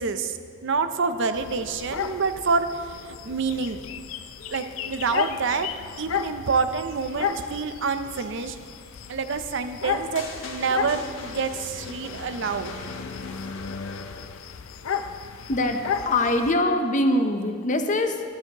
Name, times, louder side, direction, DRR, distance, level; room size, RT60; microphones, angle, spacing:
voice 1, 0.0-3.8 4.5-5.7 6.0-8.6 9.1-12.7, right 4 dB, 65° right, 9 dB, 0.6 m, -27 dB
sound 1, 1.3-16.5, left 7 dB, 90° left, 0.5 m, -34 dB
sound 2, 10.1-14.4, left 2 dB, 70° left, 1.3 m, -40 dB
voice 2, 15.5-18.2, left 1 dB, 40° left, 6 dB, 0.7 m, -23 dB
12.5 x 12.5 x 3.0 m, 2.2 s
head